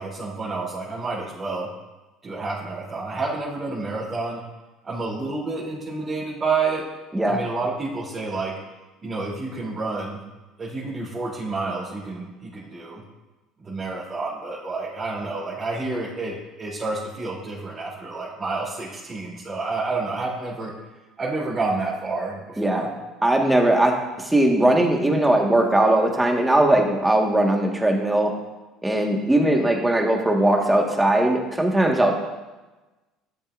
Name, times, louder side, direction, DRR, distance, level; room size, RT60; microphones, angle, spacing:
voice 1, 0.0-1.7 2.2-4.4 4.8-6.8 7.3-8.6 9.0-10.2 10.6-13.0 13.6-20.7 21.2-22.9, right 3 dB, 30° right, -9 dB, 3.2 m, -29 dB
voice 2, 22.6-22.9 23.2-28.3 28.8-32.1, right 1 dB, 10° right, 2 dB, 1.6 m, -19 dB
12.5 x 7.2 x 2.6 m, 1.1 s
hypercardioid pair, 75°, 0 cm